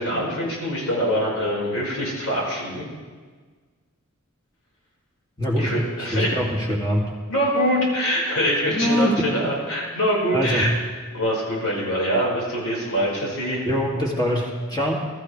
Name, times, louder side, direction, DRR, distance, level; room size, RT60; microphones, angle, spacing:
voice 1, 0.0-2.9 5.6-6.4 7.3-10.7 11.1-13.6, equal, 75° left, -4 dB, 5.1 m, -24 dB
voice 2, 5.4-7.0 8.7-9.5 10.3-10.7 13.6-15.0, equal, 20° left, -1 dB, 2.5 m, -23 dB
22.0 x 13.5 x 3.4 m, 1.5 s
head